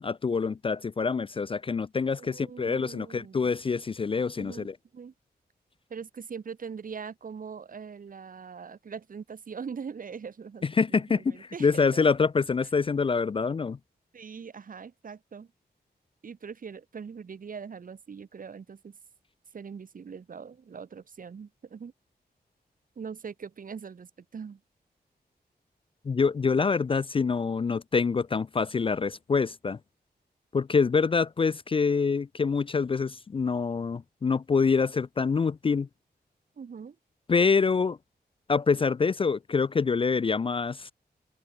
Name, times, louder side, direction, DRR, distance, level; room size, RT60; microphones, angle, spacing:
voice 1, 0.0-4.7 10.6-13.8 26.1-29.8 30.5-35.9 37.3-38.0 38.5-40.9, left 5 dB, 30° left, 0.4 m, -26 dB
voice 2, 2.2-3.5 4.4-5.1 5.9-12.1 14.1-15.5 16.2-19.0 19.5-21.9 22.9-24.6 36.6-37.0, right 6 dB, 55° right, 1.6 m, -42 dB
wide cardioid pair, 165°, 17 cm